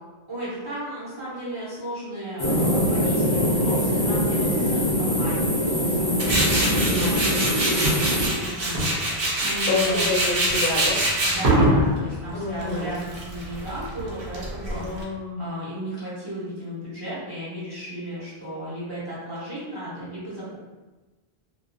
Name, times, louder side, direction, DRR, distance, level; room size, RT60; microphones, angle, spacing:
voice 1, 0.3-8.7 9.4-10.1 11.2-14.9 15.4-20.6, right 1 dB, 25° right, -10 dB, 0.6 m, -34 dB
sound 1, 2.4-8.3, equal, 30° left, 0.5 m, -23 dB
Tools, 6.2-15.0, right 1 dB, 70° right, 0.8 m, -24 dB
voice 2, 6.7-7.1 9.7-11.0 12.3-12.9 14.7-15.5, left 3 dB, 55° left, -8 dB, 0.8 m, -28 dB
2.4 x 2.1 x 2.4 m, 1.2 s
omnidirectional pair, 1.0 m